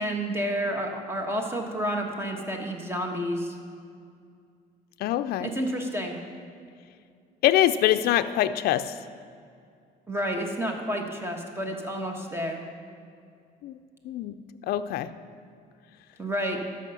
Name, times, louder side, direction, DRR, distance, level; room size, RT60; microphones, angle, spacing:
voice 1, 0.0-3.6 5.4-6.2 10.1-12.6 16.2-16.6, equal, 15° right, 2 dB, 1.3 m, -30 dB
voice 2, 5.0-5.5 7.4-8.9 13.6-13.7 14.0-15.1, left 12 dB, 65° left, 10 dB, 0.4 m, -24 dB
13.5 x 5.4 x 5.6 m, 2.3 s
cardioid pair, 110°, 17 cm